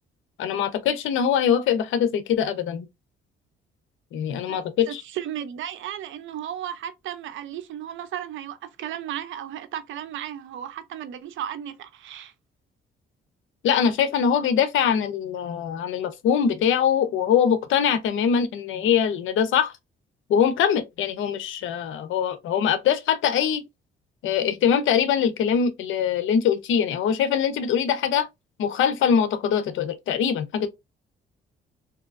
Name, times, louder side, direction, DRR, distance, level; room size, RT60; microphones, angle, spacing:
voice 1, 0.4-2.9 4.1-5.0 13.6-19.7 20.3-23.6 24.2-28.3 28.6-30.7, left 8 dB, 80° left, 0.7 m, -23 dB
voice 2, 4.9-12.3, right 10 dB, 75° right, 0.6 m, -34 dB
3.6 x 2.7 x 2.5 m
cardioid pair, 90°, 20 cm